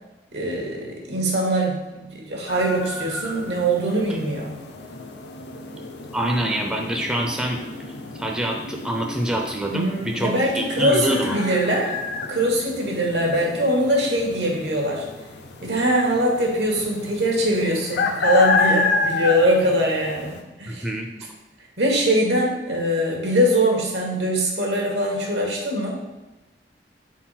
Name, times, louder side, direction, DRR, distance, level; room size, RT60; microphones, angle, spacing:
voice 1, 0.3-4.6 9.7-11.9 12.3-15.1 15.6-20.9 21.8-25.9, right 1 dB, 80° right, -1 dB, 1.7 m, -22 dB
sound 1, 2.5-20.4, left 3 dB, 75° left, 0.7 m, -30 dB
voice 2, 6.1-7.6 8.2-11.4 20.7-21.1, right 1 dB, 5° right, 1 dB, 0.5 m, -26 dB
4.6 x 4.0 x 5.7 m, 1.1 s
head